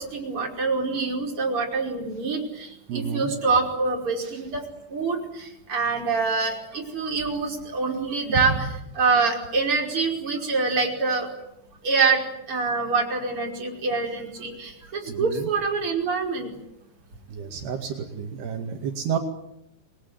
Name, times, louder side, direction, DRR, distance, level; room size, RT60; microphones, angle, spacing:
voice 1, 0.0-4.6 4.9-8.5 9.0-11.3 11.8-12.2 12.5-16.5, right 4 dB, 30° right, 1 dB, 5.9 m, -25 dB
voice 2, 2.9-3.4 4.2-4.4 8.3-8.6 15.1-15.5 17.3-19.2, right 7 dB, 70° right, 3 dB, 4.2 m, -30 dB
29.0 x 21.5 x 9.5 m, 0.81 s
omnidirectional pair, 4.9 m